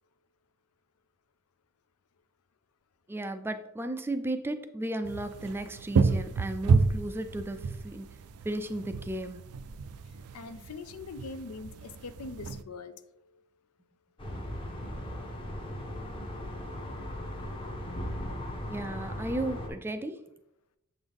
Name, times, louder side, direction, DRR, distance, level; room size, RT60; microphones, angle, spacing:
voice 1, 3.1-8.1 8.4-9.4 18.7-20.2, right 1 dB, 10° right, 8 dB, 0.3 m, -34 dB
sound 1, 5.0-12.6, right 4 dB, 85° right, 0.4 m, -30 dB
voice 2, 10.1-13.4, left 4 dB, 80° left, 12 dB, 0.5 m, -43 dB
sound 2, 14.2-19.7, left 1 dB, 25° left, 0.9 m, -37 dB
7.1 x 3.9 x 3.4 m, 0.81 s
head